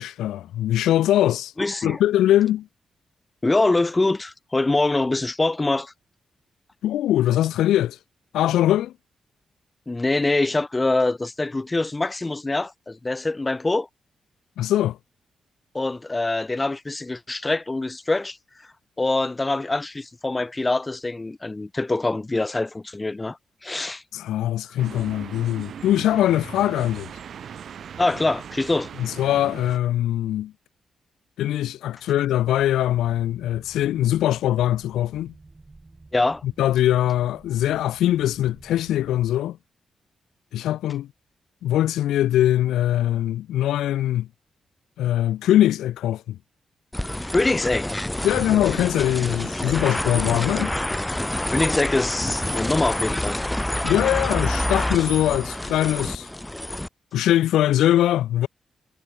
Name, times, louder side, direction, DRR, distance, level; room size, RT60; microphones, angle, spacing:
voice 1, 0.0-1.5 1.8-2.7 6.8-8.0 8.3-8.9 14.6-15.0 24.1-27.1 29.0-30.5 31.4-35.3 36.6-39.6 40.5-41.1 41.6-44.3 45.0-46.4 48.2-50.7 53.8-56.3 57.1-58.5, left 13 dB, 85° left, 1.1 m, -22 dB
voice 2, 1.6-2.0 3.4-5.9 9.9-13.9 15.7-18.4 19.0-23.4 23.6-24.0 28.0-28.9 36.1-36.4 47.3-47.9 51.5-53.4, left 2 dB, 25° left, 1.4 m, -24 dB
sound 1, 24.8-29.8, right 8 dB, 70° right, 3.9 m, -39 dB
sound 2, 32.6-39.3, right 2 dB, 30° right, 7.1 m, -50 dB
sound 3, 46.9-56.9, left 1 dB, 10° left, 0.6 m, -27 dB
supercardioid pair, 45°, 0 cm